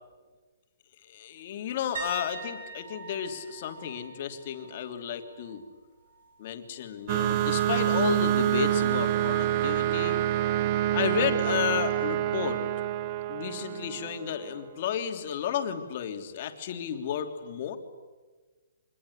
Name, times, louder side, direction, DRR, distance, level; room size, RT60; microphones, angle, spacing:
voice 1, 1.0-5.6 6.4-10.2 10.9-12.6 13.3-17.8, left 9 dB, 40° left, 5 dB, 3.2 m, -32 dB
sound 1, 1.9-5.7 6.0-6.4 9.2-9.3, right 4 dB, 65° right, 7.0 m, -43 dB
sound 2, 7.1-14.4, right 13 dB, 30° right, 0.8 m, -27 dB
26.0 x 21.5 x 9.9 m, 1.3 s
hypercardioid pair, 160°, 0 cm